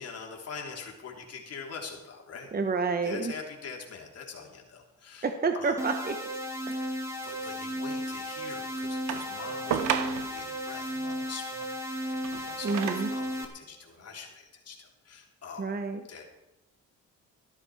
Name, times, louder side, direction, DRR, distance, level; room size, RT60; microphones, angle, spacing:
voice 1, 0.0-2.5 3.0-5.3 5.5-5.8 6.7-15.7 16.1-16.2, left 5 dB, 55° left, 0 dB, 3.4 m, -44 dB
voice 2, 2.5-3.3 5.2-6.1 6.7-6.9 12.6-13.1 15.6-16.0, right 4 dB, 30° right, 7 dB, 1.1 m, -29 dB
sound 1, 5.8-13.5, equal, 10° right, 2.2 m, -34 dB
sound 2, 9.1-10.5 12.0-13.2 14.1-14.2, right 9 dB, 85° right, 1.0 m, -33 dB
13.5 x 12.5 x 4.9 m, 0.97 s
cardioid pair, 90°, 30 cm